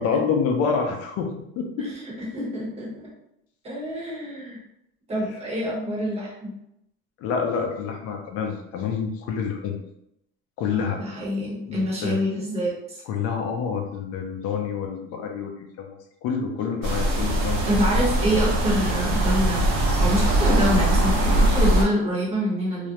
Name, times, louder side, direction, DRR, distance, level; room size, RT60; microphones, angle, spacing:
voice 1, 0.0-1.9 5.1-5.2 7.2-9.8 10.6-11.0 11.7-12.2 13.1-16.0 16.2-17.7, left 6 dB, 50° left, 3 dB, 0.5 m, -27 dB
voice 2, 1.8-3.1 3.6-4.6 5.1-6.6 10.8-13.0 17.6-19.6 19.9-22.9, equal, 20° right, -5 dB, 0.8 m, -26 dB
sound 1, 16.8-21.8, right 1 dB, 55° right, 0.7 m, -21 dB
2.4 x 2.0 x 2.8 m, 0.80 s
cardioid pair, 155°, 30 cm